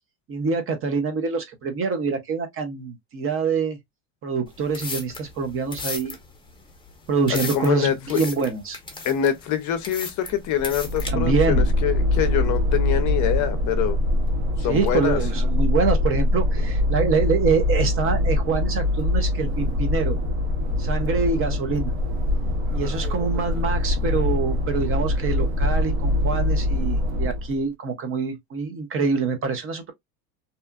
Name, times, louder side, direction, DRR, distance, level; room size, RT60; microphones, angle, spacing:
voice 1, 0.3-3.8 4.2-6.1 7.1-8.8 11.1-11.7 14.7-20.2 20.8-21.9 22.7-29.9, right 5 dB, 30° right, 0.6 m, -25 dB
sound 1, 4.5-11.1, left 3 dB, 10° left, 0.8 m, -36 dB
voice 2, 7.3-8.3 9.0-14.0 14.6-15.2, left 10 dB, 45° left, 0.6 m, -25 dB
sound 2, 10.3-27.6, left 1 dB, 90° right, 0.9 m, -23 dB
2.8 x 2.3 x 2.3 m
supercardioid pair, 120°, 42 cm